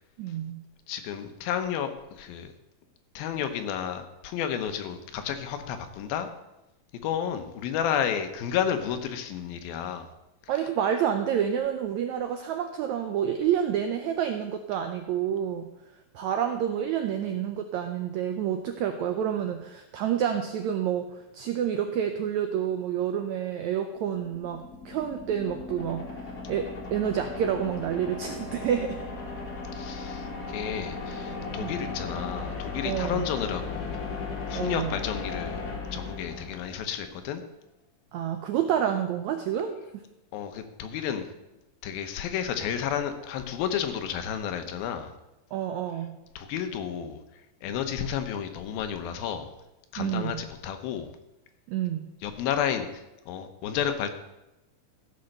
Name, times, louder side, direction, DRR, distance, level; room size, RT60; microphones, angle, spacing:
voice 1, 0.2-0.6 10.5-15.7 16.1-29.0 31.6-31.7 32.8-33.2 34.5-34.9 38.1-39.8 45.5-46.2 50.0-50.4 51.7-52.0, right 9 dB, 85° right, 6 dB, 1.6 m, -29 dB
voice 2, 0.9-2.5 3.2-6.3 7.0-10.1 29.7-34.2 34.5-35.6 35.9-37.4 40.3-41.3 41.8-45.1 46.4-47.2 47.6-49.5 49.9-51.1 52.2-52.9 53.3-54.1, left 8 dB, 90° left, 8 dB, 2.8 m, -31 dB
sound 1, 24.0-37.0, left 4 dB, 40° left, 1.4 m, -36 dB
15.0 x 5.3 x 6.6 m, 0.95 s
omnidirectional pair, 4.1 m